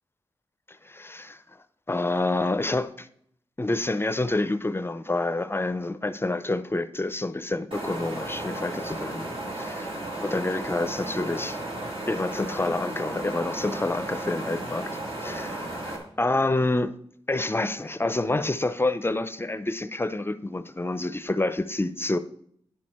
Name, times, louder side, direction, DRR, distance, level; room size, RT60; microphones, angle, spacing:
voice 1, 0.7-1.4 1.9-3.1 3.6-9.3 9.6-11.6 12.1-17.0 17.3-22.2, left 2 dB, 25° left, 0.5 m, -28 dB
sound 1, 7.7-16.0, right 1 dB, 60° right, 2.1 m, -34 dB
9.5 x 6.3 x 4.3 m
cardioid pair, 65°, 10 cm